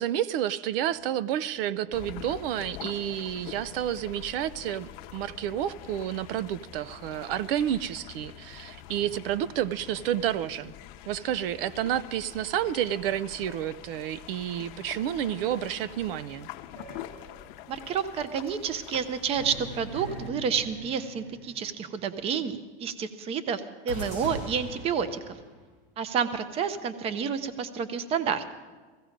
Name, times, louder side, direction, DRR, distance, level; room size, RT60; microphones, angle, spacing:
voice 1, 0.0-10.7 11.1-16.5, right 11 dB, 70° right, 17 dB, 0.5 m, -30 dB
sound 1, 0.7-7.0, right 1 dB, 45° right, 6.6 m, -56 dB
sound 2, 1.9-20.3, left 12 dB, 50° left, 0.7 m, -45 dB
sound 3, 16.8-17.8 19.4-22.0 23.9-25.6, right 1 dB, 90° right, 6.5 m, -41 dB
voice 2, 17.7-25.2 26.0-28.4, right 7 dB, 20° right, 13 dB, 0.5 m, -30 dB
16.5 x 15.5 x 5.1 m, 1.4 s
supercardioid pair, 175°, 30 cm